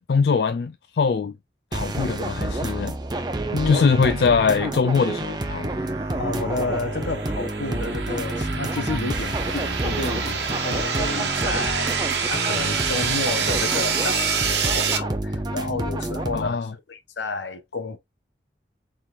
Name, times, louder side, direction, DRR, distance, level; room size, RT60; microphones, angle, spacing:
voice 1, 0.1-1.3 1.7-3.0 3.7-5.7 16.3-16.7, left 5 dB, 60° left, 0.4 m, -22 dB
sound 1, 1.7-16.5, right 2 dB, 25° right, 0.6 m, -29 dB
voice 2, 3.5-3.9 6.2-18.0, left 3 dB, 90° left, 0.9 m, -31 dB
sound 2, 6.0-15.0, right 6 dB, 75° right, 1.1 m, -27 dB
4.5 x 3.6 x 2.4 m
head